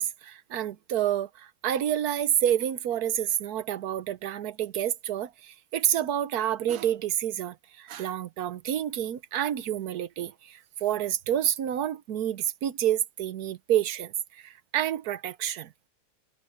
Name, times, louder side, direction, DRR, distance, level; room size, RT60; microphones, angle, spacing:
voice 1, 0.0-14.1 14.4-15.9, right 11 dB, 70° right, 1.3 m, -29 dB
omnidirectional pair, 1.8 m